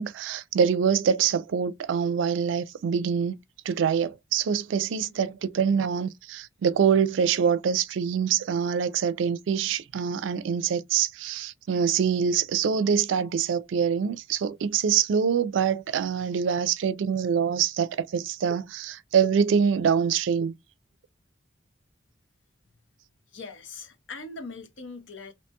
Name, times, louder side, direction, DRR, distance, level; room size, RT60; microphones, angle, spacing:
voice 1, 0.0-3.4 3.7-20.5, right 7 dB, 80° right, 0.3 m, -25 dB
voice 2, 23.3-25.3, left 3 dB, 80° left, 0.8 m, -41 dB
2.7 x 2.2 x 2.8 m
head